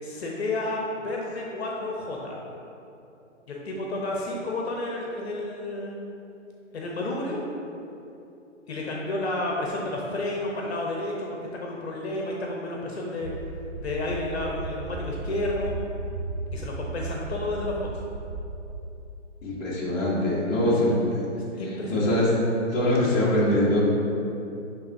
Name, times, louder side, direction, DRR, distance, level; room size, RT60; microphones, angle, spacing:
voice 1, 0.0-2.4 3.5-6.0 6.7-7.4 8.7-13.3 13.8-15.7 16.5-17.9 20.5-21.0 21.6-22.1, left 2 dB, 55° left, -2 dB, 1.0 m, -31 dB
sound 1, 13.2-18.8, right 3 dB, 35° right, 0.5 m, -35 dB
voice 2, 19.4-21.2 21.9-22.3 22.7-23.8, left 1 dB, 15° left, -8 dB, 1.3 m, -23 dB
10.5 x 3.5 x 2.7 m, 2.8 s
hypercardioid pair, 140°, 38 cm